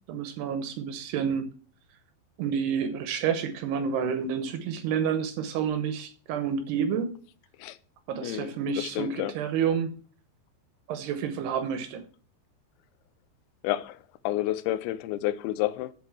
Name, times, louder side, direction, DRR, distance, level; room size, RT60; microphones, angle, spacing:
voice 1, 0.1-1.5 2.4-7.1 8.1-9.9 10.9-12.0, right 7 dB, 75° right, 2.8 m, -29 dB
voice 2, 8.2-9.3 13.6-15.9, left 15 dB, 80° left, 3.0 m, -30 dB
8.0 x 6.9 x 7.7 m
omnidirectional pair, 5.3 m